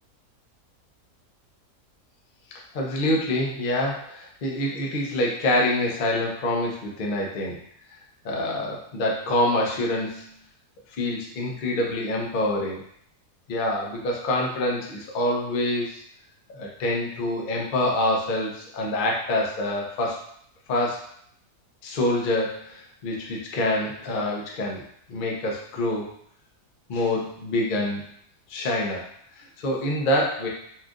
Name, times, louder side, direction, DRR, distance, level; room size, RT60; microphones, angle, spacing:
voice 1, 2.5-7.6 8.2-10.2 10.9-12.8 13.5-16.0 16.5-20.2 20.7-21.0 21.8-24.8 25.1-26.1 26.9-28.0 28.5-29.1 29.3-30.5, left 1 dB, 50° left, -2 dB, 0.6 m, -26 dB
4.4 x 2.4 x 2.4 m, 0.67 s
omnidirectional pair, 1.7 m